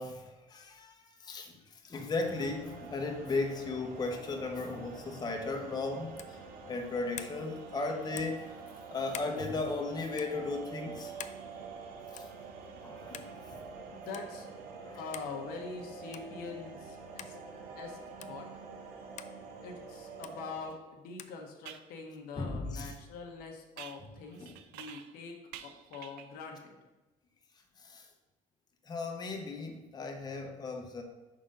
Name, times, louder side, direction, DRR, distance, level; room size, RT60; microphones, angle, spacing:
voice 1, 0.0-8.6 8.9-11.1 12.1-12.3 12.8-13.6 14.8-15.0 22.3-22.9 24.4-24.5 27.8-28.1 28.8-31.0, left 3 dB, 25° left, 2 dB, 0.9 m, -36 dB
sound 1, 2.2-20.7, right 4 dB, 65° right, 0.9 m, -47 dB
sound 2, 6.1-6.4 7.1-7.4 8.1-8.4 9.1-9.4 10.1-10.3 11.2-11.4 12.2-12.4 13.1-13.3 14.1-14.3 15.1-15.3 16.1-16.3 17.2-17.3 18.2-18.3 19.2-19.3 20.2-20.4 21.2-21.4, left 10 dB, 50° left, 0.4 m, -45 dB
voice 2, 13.9-14.5 15.0-17.4 17.8-18.5 19.6-26.8, left 4 dB, 80° left, 2 dB, 1.0 m, -44 dB
sound 3, 20.7-20.8 21.6-21.9 23.8-25.2 25.5-26.4, right 11 dB, 85° right, 0.4 m, -49 dB
5.0 x 3.9 x 5.3 m, 1.1 s
cardioid pair, 100°, 15 cm